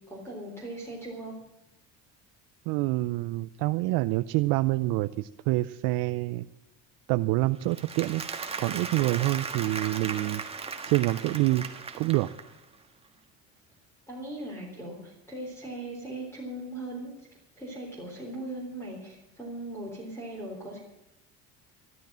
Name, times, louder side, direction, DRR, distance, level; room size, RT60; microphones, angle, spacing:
voice 1, 0.1-1.3 14.1-17.1 17.6-20.8, right 1 dB, 5° left, -1 dB, 3.6 m, -39 dB
voice 2, 2.7-6.5 7.1-8.2 8.6-10.4 10.8-11.7 12.0-12.3, right 19 dB, 85° right, 11 dB, 0.6 m, -26 dB
Applause, 7.6-12.6, right 4 dB, 15° right, 1.6 m, -37 dB
13.5 x 13.0 x 6.2 m, 0.89 s
cardioid pair, 135°, 35 cm